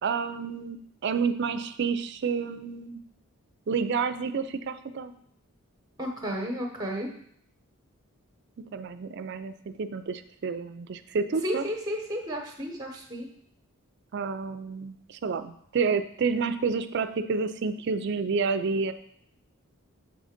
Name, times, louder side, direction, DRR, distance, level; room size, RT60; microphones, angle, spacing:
voice 1, 0.0-3.0 3.7-5.1 8.7-11.7 14.1-18.9, right 5 dB, 55° right, 11 dB, 0.4 m, -29 dB
voice 2, 6.0-7.1 11.4-13.3, equal, 20° right, 2 dB, 1.0 m, -32 dB
7.1 x 3.8 x 5.0 m, 0.67 s
head